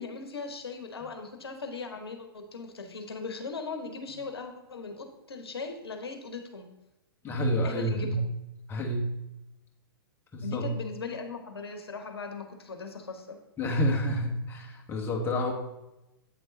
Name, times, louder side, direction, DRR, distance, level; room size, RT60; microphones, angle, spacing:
voice 1, 0.0-6.7 7.6-8.2 10.4-13.4, left 4 dB, 80° left, 5 dB, 0.9 m, -39 dB
voice 2, 7.2-8.2 8.7-9.1 10.3-10.7 13.6-15.5, equal, 15° left, 0 dB, 1.1 m, -29 dB
8.2 x 3.7 x 3.8 m, 0.95 s
figure-of-eight pair, 115°, 13 cm